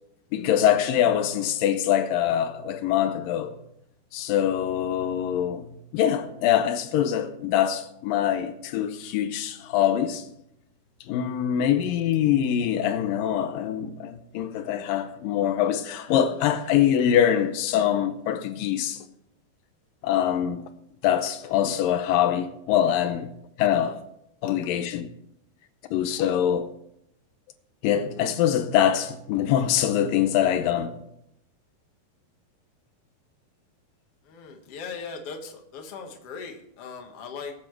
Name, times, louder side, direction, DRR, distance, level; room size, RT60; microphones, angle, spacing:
voice 1, 0.3-3.5 4.1-10.3 11.1-19.1 20.0-20.6 21.0-23.3 23.6-24.0 24.4-25.1 25.9-26.7 27.8-31.0, left 10 dB, 80° left, 2.1 m, -24 dB
voice 2, 34.2-37.5, left 5 dB, 55° left, 1.8 m, -39 dB
22.0 x 8.6 x 3.2 m
omnidirectional pair, 4.6 m